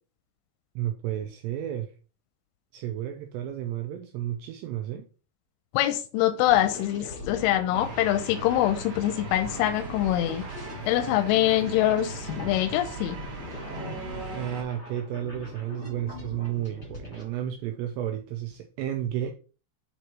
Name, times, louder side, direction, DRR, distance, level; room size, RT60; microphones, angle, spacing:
voice 1, 0.8-1.9 2.7-5.0 14.3-19.3, right 11 dB, 85° right, 2.5 m, -32 dB
voice 2, 5.7-10.4 10.9-13.2, left 13 dB, 85° left, 3.0 m, -24 dB
sound 1, 6.4-17.2, left 2 dB, 30° left, 1.3 m, -43 dB
sound 2, 7.7-14.6, right 3 dB, 50° right, 2.6 m, -38 dB
sound 3, 10.3-10.4 11.7-14.7 16.7-16.8, left 5 dB, 70° left, 1.4 m, -44 dB
10.0 x 4.0 x 3.1 m
omnidirectional pair, 5.5 m